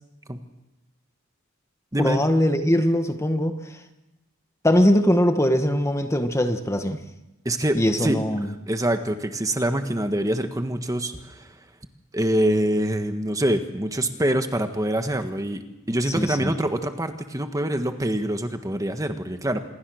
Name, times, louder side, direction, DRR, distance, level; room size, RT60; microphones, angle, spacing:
voice 1, 2.0-3.8 4.6-7.0 7.7-8.5 16.1-16.5, equal, 15° left, 7 dB, 1.3 m, -21 dB
voice 2, 7.4-8.2 8.7-11.5 12.1-19.6, right 1 dB, 15° right, 7 dB, 1.4 m, -25 dB
26.5 x 21.5 x 6.4 m, 0.97 s
head